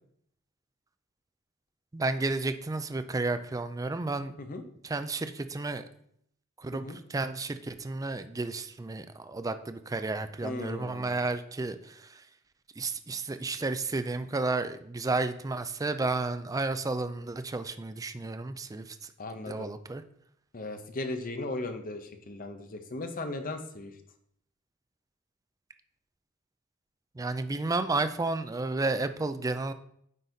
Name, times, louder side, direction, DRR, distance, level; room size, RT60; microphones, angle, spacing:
voice 1, 1.9-4.3 4.8-5.9 6.6-6.8 7.1-12.1 12.8-19.0 19.5-20.0 27.2-29.7, right 3 dB, 15° right, 11 dB, 0.4 m, -32 dB
voice 2, 10.4-11.2 19.2-19.7 20.5-23.9, left 2 dB, 40° left, 7 dB, 0.8 m, -37 dB
9.2 x 4.0 x 3.9 m, 0.69 s
head